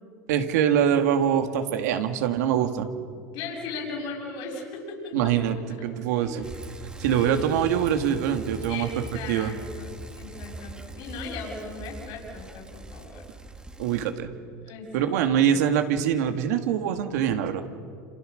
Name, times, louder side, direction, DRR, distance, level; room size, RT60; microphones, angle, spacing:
voice 1, 0.3-2.9 5.1-6.5 7.0-9.5 13.8-14.3 14.9-17.6, right 9 dB, 80° right, 6 dB, 2.3 m, -24 dB
voice 2, 3.3-5.1 6.2-6.3 7.1-7.6 8.7-13.2 14.6-15.1, left 3 dB, 60° left, 0 dB, 6.9 m, -37 dB
Bicycle, 6.4-14.1, right 2 dB, 10° right, 1.9 m, -41 dB
28.5 x 27.5 x 6.6 m, 2.3 s
supercardioid pair, 115°, 9 cm